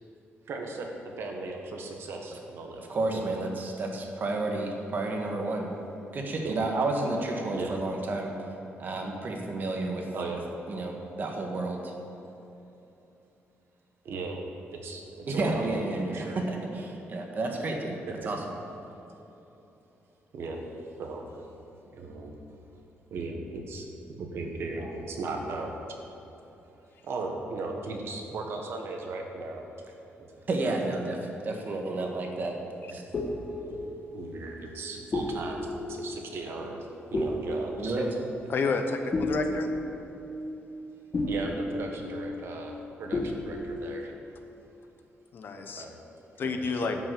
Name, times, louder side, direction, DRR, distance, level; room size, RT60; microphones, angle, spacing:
voice 1, 0.5-3.3 6.4-6.5 7.5-7.8 10.1-10.4 14.0-14.4 14.8-15.7 16.1-16.4 20.3-20.6 21.0-21.3 21.9-22.3 23.1-23.9 24.2-25.7 27.0-29.7 30.2-30.3 32.9-33.0 33.7-33.8 34.1-36.8 37.1-38.1 41.3-44.1 45.8-46.0 46.4-47.0, right 3 dB, 65° right, 2 dB, 1.5 m, -37 dB
voice 2, 2.7-5.7 6.1-8.3 8.8-10.1 10.7-11.9 15.3-18.0 18.2-18.4 30.5-31.2 31.4-32.5 32.9-33.0 37.8-38.1, right 2 dB, 45° right, 1 dB, 1.5 m, -31 dB
sound 1, 32.7-42.9 43.1-44.0, left 1 dB, 35° left, 1.1 m, -34 dB
voice 3, 38.5-39.7 45.3-45.8 46.4-47.0, left 4 dB, 50° left, 6 dB, 0.9 m, -30 dB
11.0 x 5.9 x 7.6 m, 3.0 s
cardioid pair, 135°, 4 cm